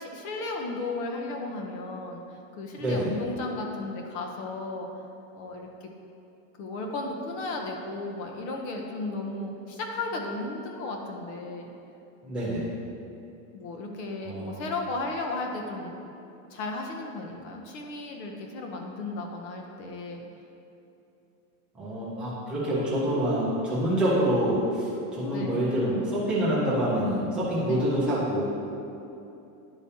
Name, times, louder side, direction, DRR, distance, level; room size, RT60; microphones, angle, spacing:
voice 1, 0.0-2.2 2.6-4.9 5.3-5.9 6.6-11.7 13.5-16.0 16.5-20.2 25.3-25.7 27.7-27.9, left 2 dB, 50° left, 1 dB, 0.8 m, -34 dB
voice 2, 2.8-3.1 12.2-12.6 14.2-14.6 21.8-28.4, equal, 5° right, -10 dB, 0.3 m, -26 dB
10.5 x 4.9 x 2.8 m, 2.8 s
supercardioid pair, 180°, 42 cm